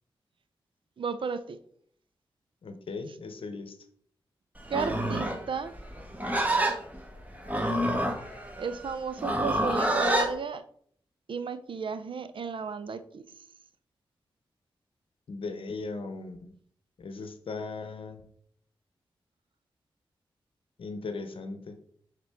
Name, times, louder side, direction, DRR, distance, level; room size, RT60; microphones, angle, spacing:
voice 1, 1.0-1.6 4.7-5.7 8.6-10.6 11.3-13.2, right 5 dB, 65° right, 12 dB, 0.5 m, -33 dB
voice 2, 2.6-3.7 15.3-16.4 17.0-18.2 20.8-21.8, left 3 dB, 70° left, 8 dB, 0.8 m, -38 dB
Livestock farm animals working animals, 4.6-10.3, right 1 dB, 15° right, 1.5 m, -28 dB
7.1 x 3.7 x 3.5 m, 0.63 s
cardioid pair, 45°, 9 cm